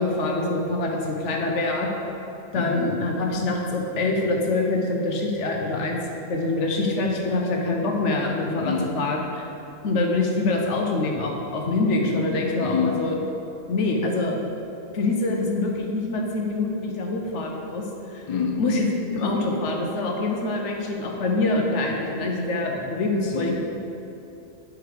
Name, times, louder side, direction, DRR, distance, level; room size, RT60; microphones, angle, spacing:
voice 1, 0.0-1.9 2.5-6.0 6.3-9.5 9.8-13.1 13.7-14.3 14.9-18.2 18.6-18.9 19.1-23.5, left 2 dB, 70° left, 1 dB, 1.1 m, -25 dB
voice 2, 2.5-2.8 8.6-9.1 12.6-13.2 18.3-18.7 23.2-23.5, left 5 dB, 45° left, 2 dB, 0.5 m, -27 dB
5.0 x 4.8 x 4.8 m, 3.0 s
omnidirectional pair, 1.3 m